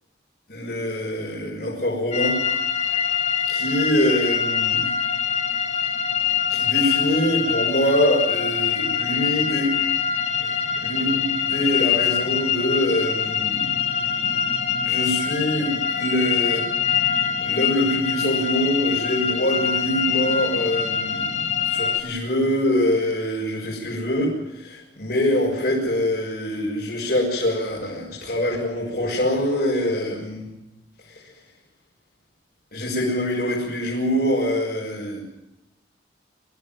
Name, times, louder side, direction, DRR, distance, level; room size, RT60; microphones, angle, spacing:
voice 1, 0.5-2.4 3.5-4.8 6.5-9.7 10.8-11.2 11.5-13.7 14.8-16.6 17.4-30.5 32.7-35.2, left 1 dB, 55° left, -4 dB, 6.6 m, -24 dB
sound 1, 2.1-22.0, left 8 dB, 35° left, 2.6 m, -24 dB
25.0 x 15.0 x 9.4 m, 0.93 s
head